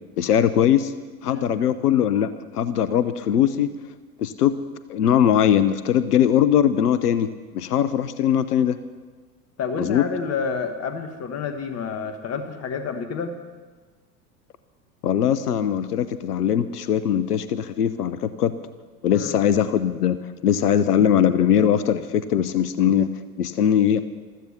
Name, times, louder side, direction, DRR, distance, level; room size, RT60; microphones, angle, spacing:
voice 1, 0.2-0.9 1.2-2.3 2.5-3.7 4.2-4.6 4.9-8.8 9.8-10.0 15.0-18.5 19.0-24.0, left 9 dB, 70° left, 13 dB, 0.9 m, -20 dB
voice 2, 9.6-13.4 19.1-19.3, left 5 dB, 30° left, 7 dB, 1.6 m, -29 dB
15.0 x 13.5 x 6.9 m, 1.4 s
figure-of-eight pair, 80°, 48 cm